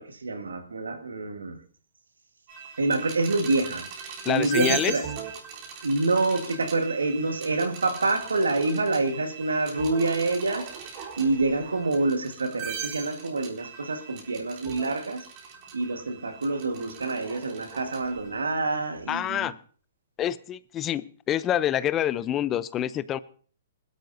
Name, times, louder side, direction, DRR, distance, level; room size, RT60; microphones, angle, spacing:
voice 1, 0.0-1.6 2.8-3.9 4.3-5.0 5.8-15.2 15.7-19.5, right 3 dB, 90° right, 1.6 m, -27 dB
sound 1, 2.5-18.4, right 7 dB, 40° right, 3.7 m, -39 dB
voice 2, 4.3-4.9 19.1-19.5 20.2-23.2, left 11 dB, 25° left, 0.6 m, -27 dB
21.0 x 12.5 x 2.7 m
hypercardioid pair, 130°, 0 cm